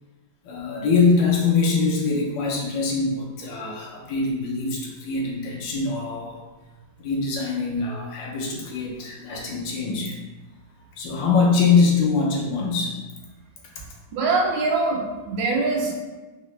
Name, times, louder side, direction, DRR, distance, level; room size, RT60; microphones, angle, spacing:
voice 1, 0.4-6.4 7.0-10.2 11.0-12.9 13.8-13.9, left 4 dB, 80° left, -2 dB, 1.5 m, -23 dB
voice 2, 14.1-16.0, right 3 dB, 80° right, 0 dB, 1.4 m, -23 dB
3.9 x 2.7 x 3.1 m, 1.2 s
omnidirectional pair, 2.1 m